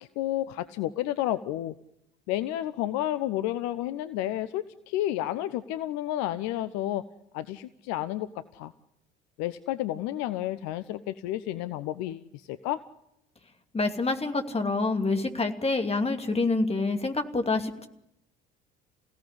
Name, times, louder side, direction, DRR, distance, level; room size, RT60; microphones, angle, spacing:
voice 1, 0.0-1.7 2.3-7.0 7.3-8.7 9.4-12.8, left 13 dB, 55° left, 13 dB, 0.9 m, -31 dB
voice 2, 13.7-17.9, left 3 dB, 20° left, 5 dB, 2.6 m, -27 dB
28.5 x 17.0 x 9.9 m, 0.82 s
figure-of-eight pair, 55°, 33 cm